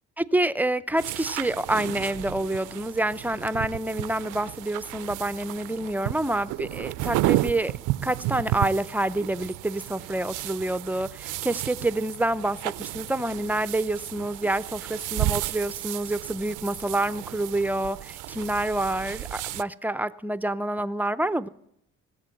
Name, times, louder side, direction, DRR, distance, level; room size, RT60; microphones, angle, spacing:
voice 1, 0.2-7.7 8.0-21.5, right 1 dB, 5° right, 0.4 m, -27 dB
sound 1, 1.0-19.6, right 17 dB, 85° right, 0.5 m, -33 dB
18.0 x 7.7 x 7.7 m
cardioid pair, 90°, 30 cm